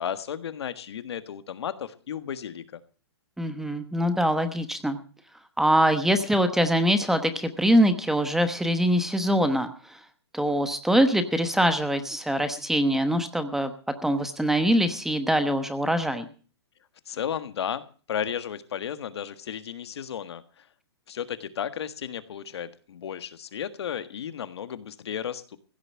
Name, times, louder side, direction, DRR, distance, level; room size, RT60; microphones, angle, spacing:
voice 1, 0.0-2.8 17.1-20.6 21.1-25.6, left 8 dB, 75° left, 12 dB, 1.5 m, -34 dB
voice 2, 3.4-5.0 5.6-10.0 10.3-13.7 14.0-16.3, equal, 5° right, 9 dB, 1.1 m, -23 dB
16.0 x 6.8 x 8.8 m, 0.40 s
hypercardioid pair, 140°, 14 cm